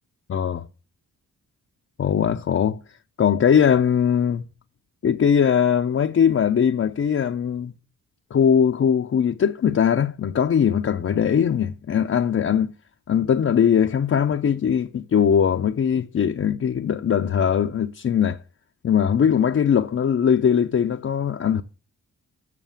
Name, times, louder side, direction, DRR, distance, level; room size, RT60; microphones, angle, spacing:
voice 1, 0.3-0.7 2.0-2.8 3.2-4.4 5.0-7.7 8.3-12.7 13.1-18.4 18.8-21.6, left 8 dB, 40° left, 0.6 m, -20 dB
7.6 x 6.2 x 7.3 m
supercardioid pair, 55°, 37 cm